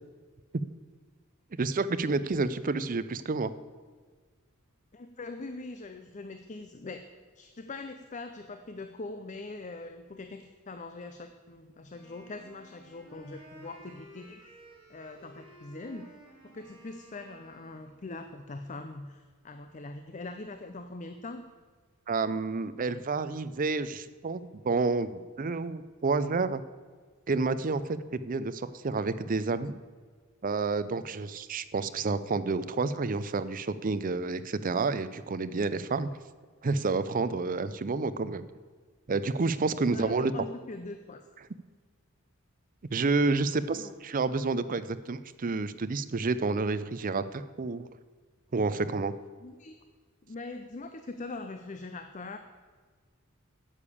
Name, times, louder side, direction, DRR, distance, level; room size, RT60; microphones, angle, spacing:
voice 1, 1.6-3.5 22.1-26.6 27.3-29.7 30.4-36.1 36.6-38.4 39.1-40.3 42.9-47.9 48.5-49.1, right 3 dB, 40° right, 13 dB, 0.5 m, -29 dB
voice 2, 4.9-7.1 7.4-14.6 14.9-16.1 16.4-21.4 37.2-37.6 39.9-41.2 43.7-43.9 49.4-49.7 50.2-52.4, left 3 dB, 35° left, 8 dB, 0.6 m, -42 dB
Wind instrument woodwind instrument, 11.9-18.1, right 1 dB, 25° right, 3.5 m, -54 dB
9.8 x 7.1 x 8.4 m, 1.5 s
head